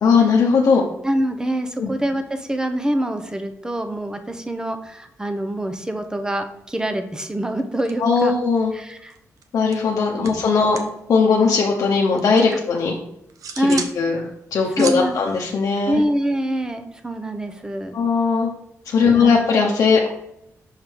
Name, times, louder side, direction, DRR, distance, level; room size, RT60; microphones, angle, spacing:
voice 1, 0.0-0.8 1.8-1.9 8.0-8.7 9.5-10.8 11.1-13.0 13.5-14.2 14.5-16.0 17.9-18.5 18.9-20.1, left 5 dB, 75° left, -1 dB, 0.7 m, -18 dB
voice 2, 1.0-8.3 8.7-9.2 10.2-10.3 13.6-13.8 14.8-15.2 15.9-18.0 19.0-19.3, right 1 dB, 10° right, 7 dB, 0.7 m, -25 dB
sound 1, 6.7-7.0 7.2-8.4 8.7-11.0 11.3-12.6 13.0-14.0 14.3-16.4, right 6 dB, 85° right, 0.7 m, -36 dB
6.5 x 3.6 x 4.5 m, 0.80 s
wide cardioid pair, 115°, 6 cm